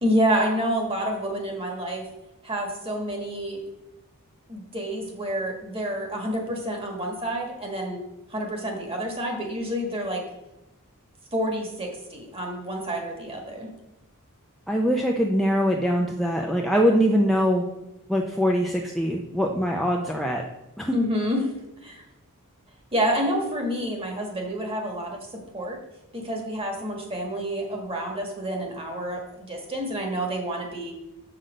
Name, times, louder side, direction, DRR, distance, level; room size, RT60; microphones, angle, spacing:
voice 1, 0.0-2.0 2.4-3.6 4.5-8.0 8.3-10.2 11.3-13.7 20.9-21.5 21.8-22.0 22.9-25.8 26.1-30.9, equal, 25° right, 2 dB, 1.6 m, -28 dB
voice 2, 14.7-17.6 18.1-20.4 20.8-20.9, equal, ahead, -1 dB, 0.5 m, -23 dB
6.6 x 5.8 x 5.1 m, 0.94 s
head